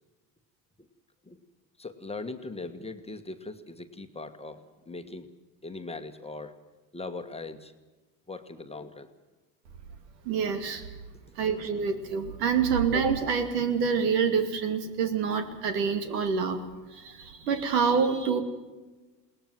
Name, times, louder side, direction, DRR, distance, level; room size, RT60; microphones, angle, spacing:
voice 1, 1.8-5.3 5.6-6.5 6.9-7.7 8.3-9.1, left 3 dB, 10° left, 6 dB, 1.5 m, -40 dB
voice 2, 10.2-10.9 11.3-16.7 16.9-18.4, right 6 dB, 75° right, 8 dB, 2.6 m, -27 dB
21.5 x 18.5 x 7.8 m, 1.2 s
hypercardioid pair, 85°, 49 cm